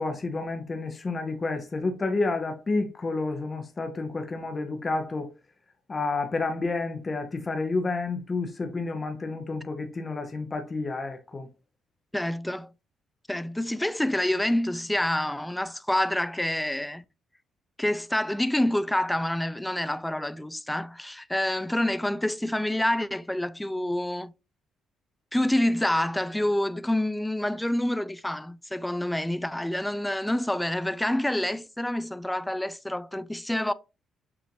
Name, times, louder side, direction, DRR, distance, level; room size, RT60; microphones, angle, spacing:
voice 1, 0.0-5.3 5.9-11.5, left 3 dB, 30° left, 0.7 m, -30 dB
voice 2, 12.1-12.7 13.3-17.0 17.8-24.3 25.3-33.7, left 1 dB, 5° left, 0.3 m, -27 dB
6.8 x 2.5 x 3.0 m
cardioid pair, 90°, 0 cm